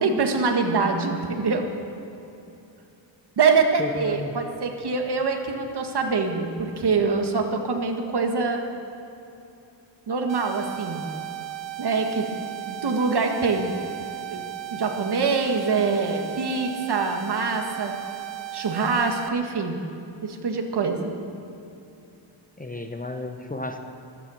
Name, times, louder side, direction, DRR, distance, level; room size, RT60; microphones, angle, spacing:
voice 1, 0.0-1.7 3.4-8.6 10.1-11.1 11.8-12.3 12.7-13.7 14.3-14.4 14.7-17.9 18.5-19.8 20.2-21.1, right 4 dB, 60° right, 3 dB, 1.7 m, -24 dB
voice 2, 3.8-4.3 22.6-23.8, left 2 dB, 20° left, 6 dB, 0.7 m, -33 dB
sound 1, 10.3-19.3, right 14 dB, 75° right, 0.7 m, -36 dB
16.0 x 14.0 x 6.4 m, 2.8 s
wide cardioid pair, 150°, 46 cm